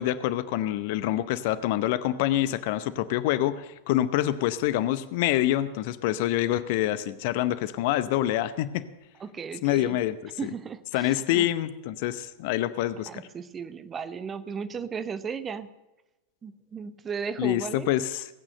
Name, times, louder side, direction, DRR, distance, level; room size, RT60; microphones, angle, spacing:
voice 1, 0.0-8.9 9.6-10.2 10.4-10.5 10.9-13.2 17.4-18.3, left 13 dB, 50° left, 15 dB, 0.7 m, -26 dB
voice 2, 9.2-10.0 10.4-11.5 13.1-15.7 16.4-17.9, right 6 dB, 20° right, 13 dB, 0.9 m, -35 dB
18.5 x 8.9 x 6.7 m, 1.0 s
figure-of-eight pair, 90°, 0 cm